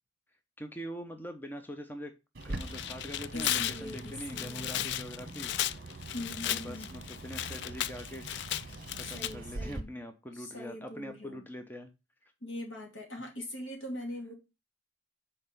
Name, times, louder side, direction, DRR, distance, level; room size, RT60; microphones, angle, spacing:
voice 1, 0.6-2.1 2.4-5.5 6.4-8.4 9.1-11.9, equal, 10° left, 0.8 m, -43 dB
Bird, 2.3-9.8, right 2 dB, 50° right, 1.1 m, -43 dB
Tearing, 2.4-9.3, left 12 dB, 60° left, 0.3 m, -35 dB
voice 2, 3.3-4.9 6.1-6.9 9.0-9.9 10.4-11.4 12.4-14.3, left 1 dB, 80° left, 2.7 m, -41 dB
6.6 x 4.3 x 5.1 m
head